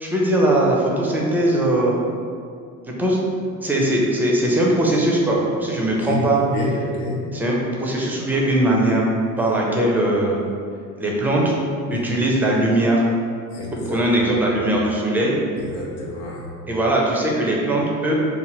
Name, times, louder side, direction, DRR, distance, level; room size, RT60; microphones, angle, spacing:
voice 1, 0.0-1.9 2.9-3.2 3.6-6.4 7.3-9.1 9.4-10.4 11.0-11.5 11.9-13.0 13.9-15.4 16.7-18.1, right 1 dB, 5° right, -3 dB, 0.4 m, -20 dB
voice 2, 6.5-7.2 9.3-9.5 11.9-12.2 13.5-14.0 15.6-16.5, left 2 dB, 70° left, -4 dB, 0.6 m, -28 dB
2.6 x 2.4 x 2.9 m, 2.3 s
figure-of-eight pair, 55°, 44 cm